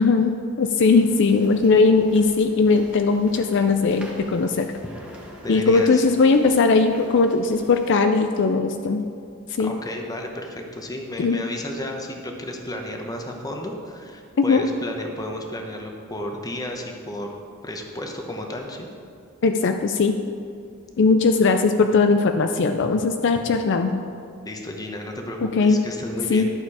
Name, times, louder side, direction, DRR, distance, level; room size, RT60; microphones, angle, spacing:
voice 1, 0.0-4.7 5.5-9.0 9.5-9.7 11.2-11.4 14.4-14.6 19.4-20.1 21.0-24.0 25.4-25.8 26.3-26.4, left 4 dB, 60° left, 7 dB, 0.4 m, -19 dB
sound 1, 0.9-7.9, equal, 5° right, 1.4 m, -44 dB
voice 2, 5.4-6.1 9.6-17.3 17.6-18.9 24.4-26.4, left 1 dB, 15° left, 2 dB, 1.0 m, -33 dB
11.5 x 6.7 x 4.8 m, 2.4 s
head